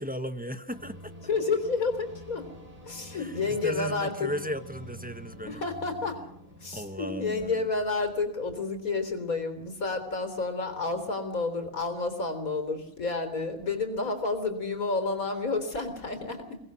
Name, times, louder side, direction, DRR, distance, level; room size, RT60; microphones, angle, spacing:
voice 1, 0.0-1.1 3.1-5.6 6.7-7.7, equal, 5° right, 9 dB, 1.1 m, -36 dB
sound 1, 0.7-9.3, left 1 dB, 25° right, 4.9 m, -48 dB
voice 2, 1.3-2.5 2.9-4.3 5.5-6.2 6.6-16.6, left 3 dB, 85° left, 7 dB, 4.1 m, -30 dB
23.5 x 19.0 x 6.3 m, 0.78 s
omnidirectional pair, 1.4 m